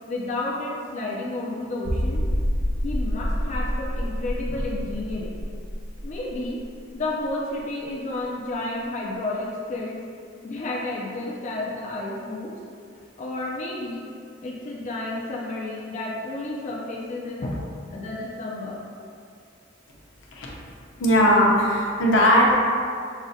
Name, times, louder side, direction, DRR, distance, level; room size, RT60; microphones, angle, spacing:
voice 1, 0.1-2.2 2.8-5.4 6.0-6.6 6.9-10.0 10.4-12.5 13.2-14.0 14.4-18.8, left 2 dB, 40° left, -4 dB, 0.4 m, -31 dB
sound 1, 1.9-7.3 7.6-7.7 8.2-8.3, equal, 40° right, 0.5 m, -28 dB
voice 2, 21.0-22.5, equal, 75° left, -3 dB, 0.7 m, -18 dB
6.0 x 2.1 x 2.7 m, 2.3 s
head